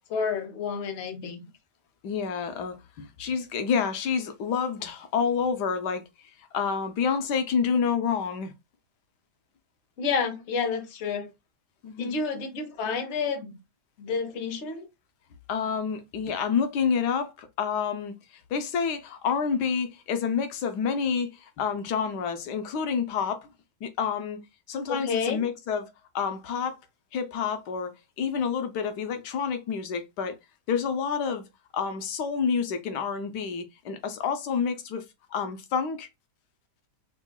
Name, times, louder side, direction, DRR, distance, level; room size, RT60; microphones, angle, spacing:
voice 1, 0.1-1.4 10.0-11.3 12.0-13.5 14.0-14.9 24.9-25.4, left 5 dB, 50° left, 1.0 m, -29 dB
voice 2, 2.0-6.0 6.4-8.5 11.8-12.2 15.5-18.1 18.5-23.5 23.8-24.4 24.7-26.8 27.1-30.3 30.7-31.4 31.7-35.0 35.3-36.1, left 6 dB, 90° left, 1.2 m, -28 dB
5.6 x 2.2 x 2.2 m
omnidirectional pair, 1.7 m